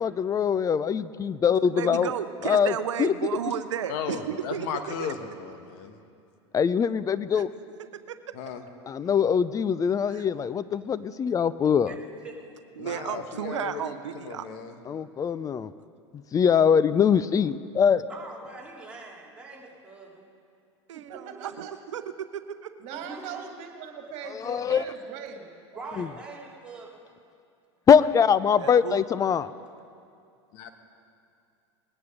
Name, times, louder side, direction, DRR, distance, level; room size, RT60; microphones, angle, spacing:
voice 1, 0.0-2.1 2.4-2.7 3.0-3.1 6.5-7.5 8.9-12.0 14.9-15.7 16.3-18.0 24.3-24.8 26.0-26.1 27.9-29.5, left 7 dB, 25° left, 16 dB, 0.5 m, -22 dB
voice 2, 1.7-5.1 7.3-7.5 8.1-8.2 10.1-10.2 12.8-14.5 20.9-22.7 28.6-29.0, right 9 dB, 80° right, 11 dB, 0.7 m, -33 dB
voice 3, 3.9-5.9 8.3-8.6 12.8-14.7 30.5-30.7, left 6 dB, 60° left, 7 dB, 1.5 m, -35 dB
voice 4, 12.2-12.6 18.1-20.3 22.9-23.4 25.7-27.0, right 3 dB, 5° right, -5 dB, 3.2 m, -43 dB
voice 5, 20.9-21.7 22.8-26.1, right 7 dB, 50° right, 3 dB, 2.2 m, -41 dB
20.5 x 9.6 x 5.1 m, 2.5 s
hypercardioid pair, 95°, 15 cm